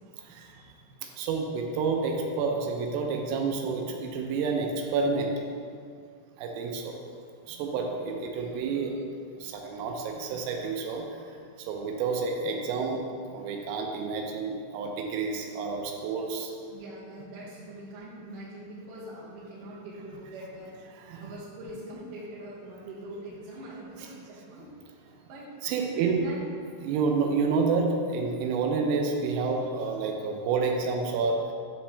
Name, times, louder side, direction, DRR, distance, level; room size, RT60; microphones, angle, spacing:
voice 1, 0.2-0.7 1.2-5.4 6.4-7.0 7.5-9.0 9.4-11.3 11.6-13.0 13.3-16.5 21.1-21.3 25.6-26.2 26.8-31.5, right 4 dB, 85° right, 2 dB, 3.3 m, -29 dB
voice 2, 16.7-20.8 21.2-24.6 25.2-26.4, right 1 dB, 65° right, -7 dB, 2.3 m, -43 dB
7.2 x 5.9 x 3.2 m, 2.2 s
omnidirectional pair, 5.8 m